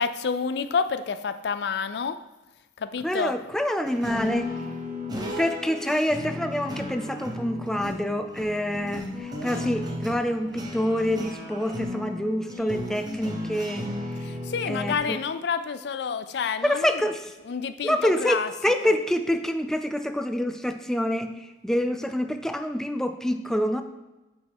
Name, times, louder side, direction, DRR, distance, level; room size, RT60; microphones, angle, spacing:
voice 1, 0.0-2.2 2.8-3.3 14.2-17.0 17.5-18.5 18.8-18.9, left 6 dB, 65° left, 12 dB, 0.4 m, -29 dB
voice 2, 3.0-4.5 5.4-13.9 14.7-15.2 16.6-17.3 17.8-23.8, equal, 5° left, 7 dB, 0.4 m, -26 dB
sound 1, 3.8-15.0, left 1 dB, 25° right, 1.1 m, -35 dB
9.0 x 5.3 x 3.6 m, 1.1 s
head